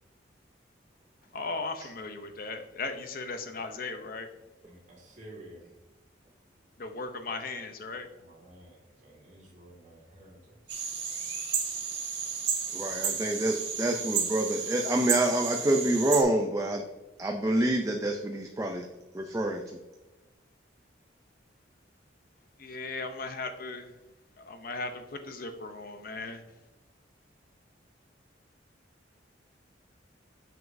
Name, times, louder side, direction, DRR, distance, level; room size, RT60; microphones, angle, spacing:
voice 1, 1.3-4.3 6.8-8.1 22.6-23.9 24.4-26.4, left 3 dB, 50° left, 7 dB, 0.6 m, -37 dB
voice 2, 4.6-5.7 8.1-10.7, right 1 dB, 40° right, -3 dB, 2.0 m, -52 dB
sound 1, 10.7-16.2, right 6 dB, 65° right, 1.4 m, -32 dB
voice 3, 12.7-16.8 17.2-18.9 19.1-19.6, right 1 dB, 15° right, 2 dB, 0.4 m, -27 dB
7.0 x 6.3 x 2.6 m, 1.1 s
head